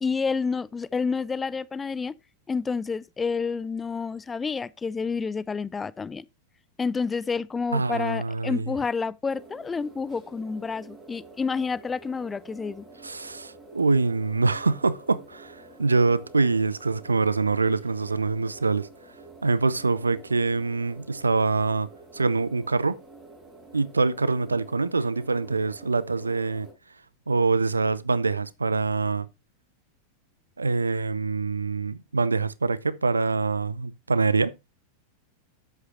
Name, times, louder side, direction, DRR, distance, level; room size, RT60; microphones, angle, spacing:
voice 1, 0.0-2.1 2.5-6.3 6.8-12.8, left 5 dB, 15° left, 0.4 m, -29 dB
voice 2, 7.7-8.7 13.0-18.9 19.4-21.9 22.1-23.0 23.7-26.7 27.3-29.3 30.6-34.5, right 3 dB, 80° right, 0.6 m, -25 dB
sound 1, 9.3-26.7, right 2 dB, 20° right, 6.0 m, -48 dB
11.0 x 8.1 x 2.7 m
figure-of-eight pair, 90°, 0 cm